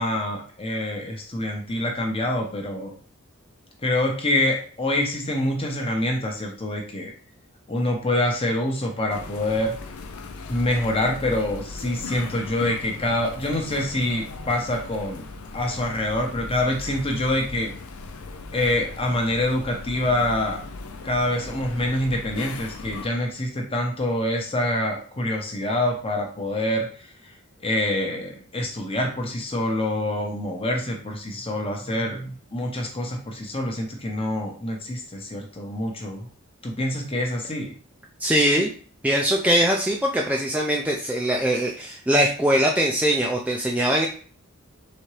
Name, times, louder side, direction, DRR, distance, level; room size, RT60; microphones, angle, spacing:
voice 1, 0.0-2.9 3.8-7.1 7.7-9.7 10.5-15.3 15.5-17.7 18.5-20.6 21.0-26.9 27.6-36.3 36.6-37.7, left 1 dB, 25° left, 1 dB, 0.9 m, -26 dB
sound 1, 9.1-23.1, left 3 dB, 85° left, 0.5 m, -38 dB
voice 2, 38.2-38.7 39.0-44.1, equal, 5° right, -1 dB, 0.4 m, -21 dB
4.3 x 3.5 x 3.3 m, 0.43 s
head